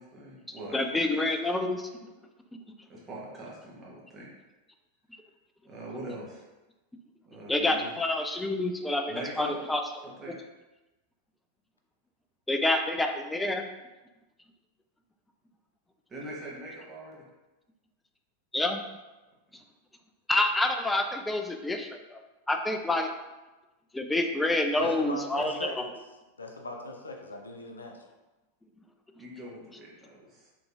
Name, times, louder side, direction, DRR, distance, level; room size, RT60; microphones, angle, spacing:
voice 1, 0.0-1.3 2.9-4.3 5.6-6.5 7.3-7.9 9.1-9.6 10.2-10.3 16.1-17.2 19.5-19.6 29.2-30.5, right 1 dB, 20° right, -5 dB, 1.1 m, -42 dB
voice 2, 0.7-1.9 7.5-9.8 10.3-10.4 12.5-13.7 18.5-18.8 20.3-22.2 22.5-23.1 23.9-25.8, left 2 dB, 10° left, 5 dB, 0.3 m, -28 dB
voice 3, 24.8-25.9 26.4-28.1, left 2 dB, 75° left, 2 dB, 0.4 m, -39 dB
3.8 x 3.0 x 2.3 m, 1.1 s
figure-of-eight pair, 90°, 0 cm